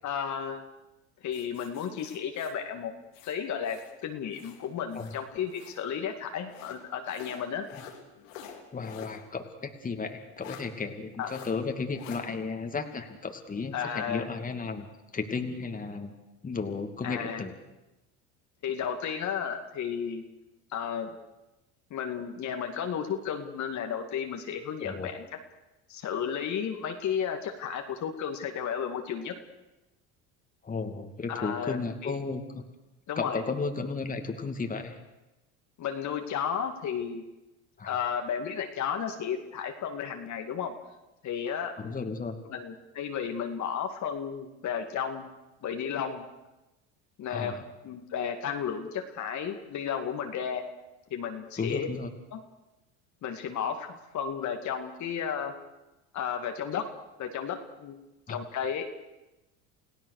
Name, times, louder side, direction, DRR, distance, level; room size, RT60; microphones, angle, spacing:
voice 1, 0.0-0.6 1.2-2.9 3.3-7.7 11.2-11.3 13.7-14.2 17.0-17.4 18.6-20.2 20.7-21.1 21.9-25.2 25.9-29.3 31.3-31.8 32.0-32.1 33.1-33.4 35.8-37.2 37.8-40.7 41.2-41.7 42.5-45.3 45.6-46.2 47.2-47.6 47.8-50.6 51.1-51.9 52.3-52.4 53.2-55.5 56.1-56.9 57.2-58.0 58.3-58.9, left 7 dB, 50° left, 4 dB, 2.4 m, -33 dB
sound 1, 1.3-4.0 4.3-5.9 6.5-9.2 9.6-9.7 10.4-10.7 11.2-11.5 12.0-12.2, left 9 dB, 85° left, 3.5 m, -48 dB
voice 2, 8.7-14.9 15.1-16.1 16.4-17.5 24.8-25.1 30.6-32.6 33.2-35.0 37.8-38.0 41.8-42.4 47.3-47.6 51.6-52.1 58.3-58.4, left 4 dB, 20° left, 5 dB, 2.6 m, -34 dB
29.5 x 17.0 x 6.6 m, 1.0 s
supercardioid pair, 95°, 37 cm